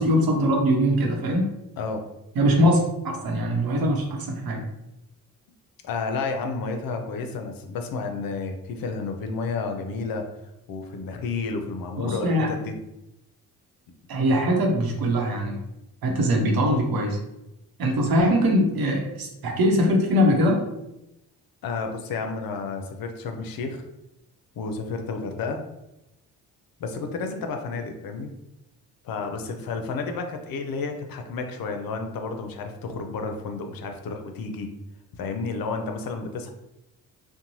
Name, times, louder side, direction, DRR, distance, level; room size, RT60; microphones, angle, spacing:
voice 1, 0.0-1.5 2.3-4.6 12.0-12.5 14.1-15.6 16.0-17.2 17.8-20.6, equal, 65° right, 1 dB, 0.8 m, -22 dB
voice 2, 5.8-10.3 10.7-12.7 21.6-23.8 24.6-25.6 26.8-28.3 29.0-34.7 35.2-36.5, left 4 dB, 65° left, 5 dB, 0.6 m, -31 dB
2.6 x 2.2 x 3.0 m, 0.90 s
supercardioid pair, 60°, 39 cm